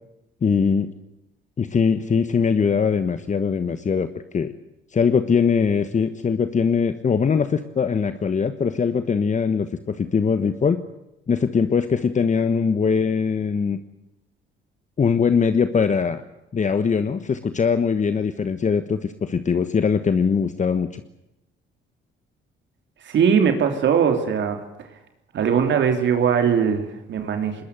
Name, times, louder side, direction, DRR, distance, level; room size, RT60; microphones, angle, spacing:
voice 1, 0.4-0.9 1.6-4.1 4.3-4.5 4.9-10.8 11.3-13.8 15.0-16.2 16.5-21.0, left 6 dB, 40° left, 10 dB, 1.3 m, -21 dB
voice 2, 23.0-24.6 25.3-27.6, right 7 dB, 65° right, 6 dB, 3.3 m, -20 dB
21.0 x 19.5 x 9.5 m, 0.90 s
cardioid pair, 90°, 20 cm